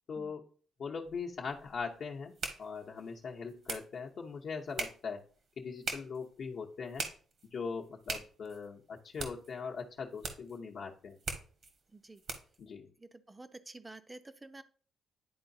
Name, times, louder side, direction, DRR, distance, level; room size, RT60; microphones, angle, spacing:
voice 1, 0.1-0.4 0.8-2.3 2.6-5.2 5.6-7.1 7.5-11.2 12.6-12.9, left 5 dB, 60° left, 0 dB, 0.8 m, -40 dB
sound 1, 1.0-12.6, right 4 dB, 55° right, 1.2 m, -44 dB
voice 2, 11.9-12.2 13.0-14.6, right 2 dB, 15° right, 10 dB, 0.6 m, -50 dB
10.5 x 3.8 x 2.7 m, 0.42 s
cardioid pair, 90°, 0 cm